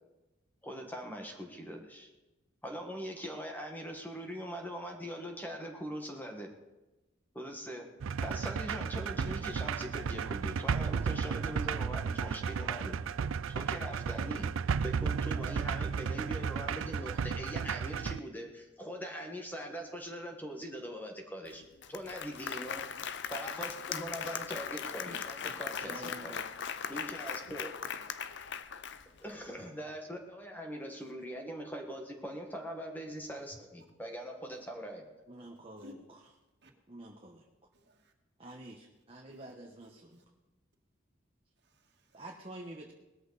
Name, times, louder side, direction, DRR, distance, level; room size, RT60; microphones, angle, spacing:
voice 1, 0.6-2.1 2.6-6.5 7.3-7.9 8.2-13.0 13.5-14.5 14.8-21.6 21.9-22.8 23.3-26.4 26.9-27.7 29.2-35.1, equal, 10° left, 2 dB, 1.7 m, -42 dB
sound 1, 8.0-18.2, right 6 dB, 85° right, 0.4 m, -34 dB
Applause, 21.5-21.6 21.8-29.4, left 7 dB, 60° left, 0.7 m, -39 dB
voice 2, 25.9-26.4 35.3-36.2 36.9-37.5 38.4-40.1 42.1-42.9, right 1 dB, 30° right, 0 dB, 1.2 m, -48 dB
voice 3, 28.8-29.2 31.0-31.1 35.8-35.9 36.6-36.7 37.7-38.1 39.3-39.4 40.1-40.2 41.6-42.2, left 1 dB, 55° right, 2 dB, 2.1 m, -58 dB
19.0 x 13.5 x 4.1 m, 1.0 s
head